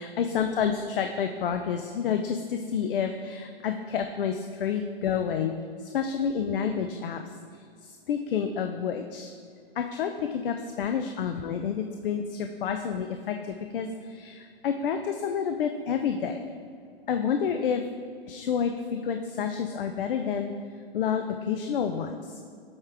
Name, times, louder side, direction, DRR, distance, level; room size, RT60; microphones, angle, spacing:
voice 1, 0.0-5.5 5.8-7.2 7.5-7.6 8.1-9.3 9.8-16.4 17.1-17.8 18.3-20.5 20.9-22.4, left 7 dB, 60° left, 6 dB, 0.4 m, -29 dB
7.9 x 3.7 x 3.4 m, 2.2 s
hypercardioid pair, 130°, 31 cm